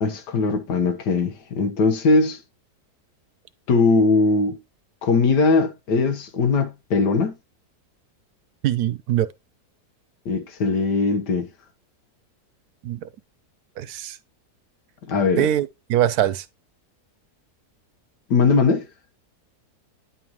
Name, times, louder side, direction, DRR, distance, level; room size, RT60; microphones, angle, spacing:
voice 1, 0.0-2.4 3.7-4.6 5.0-7.3 10.3-11.5 15.1-15.5 18.3-18.9, left 3 dB, 90° left, 1.8 m, -20 dB
voice 2, 8.6-9.3 12.8-13.1 13.8-14.2 15.4-16.5, right 12 dB, 70° right, 1.1 m, -22 dB
9.9 x 5.5 x 3.0 m
omnidirectional pair, 1.8 m